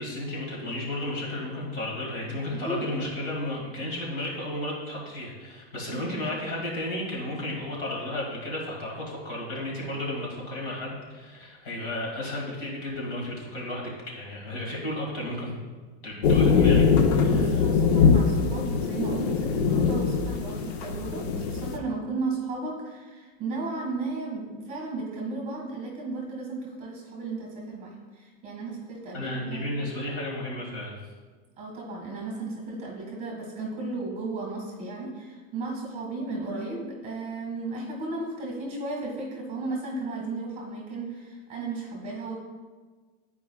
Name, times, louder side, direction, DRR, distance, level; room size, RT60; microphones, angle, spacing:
voice 1, 0.0-15.5 16.0-16.8 17.1-17.5 29.1-31.0, left 1 dB, 55° left, -3 dB, 1.9 m, -33 dB
voice 2, 2.5-3.0 5.9-6.3 17.3-29.7 31.6-42.3, right 3 dB, 20° right, -2 dB, 1.5 m, -34 dB
sound 1, 16.2-21.8, left 5 dB, 80° left, 0.7 m, -22 dB
10.5 x 4.7 x 2.3 m, 1.4 s
supercardioid pair, 170°, 32 cm